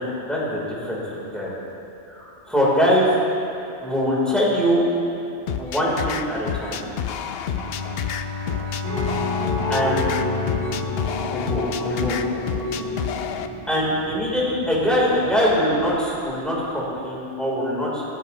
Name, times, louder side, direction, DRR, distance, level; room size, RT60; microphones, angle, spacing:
voice 1, 0.0-1.6 2.1-3.1 3.8-4.8 5.6-6.9 9.7-10.1 11.3-12.2 13.7-18.0, equal, ahead, -7 dB, 3.7 m, -23 dB
sound 1, 5.5-13.5, left 8 dB, 65° left, 0.8 m, -30 dB
Bowed string instrument, 7.5-12.4, left 4 dB, 90° right, 2.5 m, -32 dB
sound 2, 8.8-16.4, left 2 dB, 15° left, 3.4 m, -30 dB
18.0 x 13.5 x 3.1 m, 2.8 s
omnidirectional pair, 1.2 m